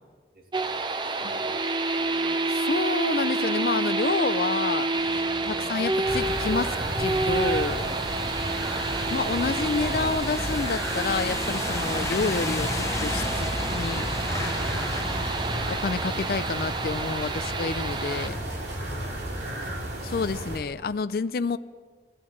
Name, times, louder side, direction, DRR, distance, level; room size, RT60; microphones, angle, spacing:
voice 1, 0.3-1.6 1.9-2.4 5.5-5.7 8.3-8.5, right 1 dB, 55° right, 2 dB, 2.1 m, -50 dB
sound 1, 0.5-18.3, right 3 dB, 25° right, 0.6 m, -29 dB
voice 2, 2.5-7.9 9.1-14.1 15.7-18.4 20.0-21.6, left 4 dB, 55° left, 13 dB, 0.4 m, -29 dB
sound 2, 4.9-17.1, left 2 dB, 15° left, 0.8 m, -35 dB
sound 3, 6.0-20.6, right 1 dB, 75° right, 2.5 m, -33 dB
13.5 x 13.0 x 7.2 m, 1.5 s
head